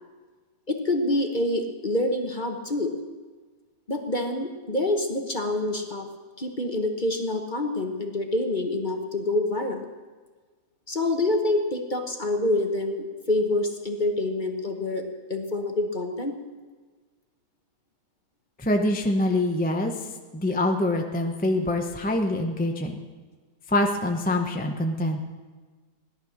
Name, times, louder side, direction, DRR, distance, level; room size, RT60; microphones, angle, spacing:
voice 1, 0.7-2.9 3.9-6.1 6.4-9.9 10.9-15.0 15.3-16.4, left 2 dB, 30° left, 4 dB, 1.2 m, -26 dB
voice 2, 18.6-19.9 20.3-23.0 23.7-25.2, left 1 dB, 5° left, 3 dB, 0.8 m, -25 dB
17.0 x 11.5 x 6.5 m, 1.4 s
omnidirectional pair, 1.9 m